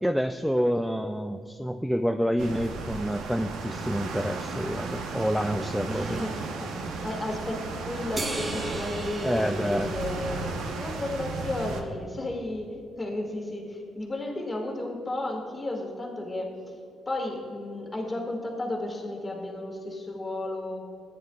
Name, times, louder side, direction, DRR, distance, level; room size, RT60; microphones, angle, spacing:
voice 1, 0.0-6.2 9.2-9.9, equal, ahead, 7 dB, 0.3 m, -28 dB
sound 1, 2.4-11.8, right 3 dB, 85° right, 0.8 m, -35 dB
voice 2, 5.9-12.7 13.0-16.5 17.0-20.9, left 1 dB, 20° left, 0 dB, 1.8 m, -33 dB
sound 2, 8.2-10.9, right 2 dB, 25° right, 1.1 m, -37 dB
14.0 x 9.4 x 2.3 m, 2.4 s
cardioid pair, 90°, 0 cm